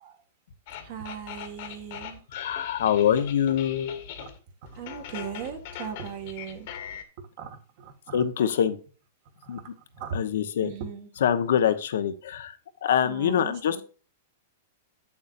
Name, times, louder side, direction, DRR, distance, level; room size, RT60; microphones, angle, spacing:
sound 1, 0.7-4.4 4.7-7.0, left 9 dB, 55° left, 1.5 m, -41 dB
voice 1, 0.8-2.2 4.2-4.3 4.7-6.8 7.4-8.2 9.4-9.6 10.0-10.2 10.6-11.1 13.0-13.8, right 7 dB, 50° right, 4 dB, 1.8 m, -38 dB
voice 2, 2.3-4.0 8.1-8.8 9.5-9.6 10.1-10.7 11.2-13.8, left 9 dB, 75° left, 10 dB, 1.1 m, -25 dB
8.4 x 7.1 x 2.6 m, 0.36 s
hypercardioid pair, 150°, 0 cm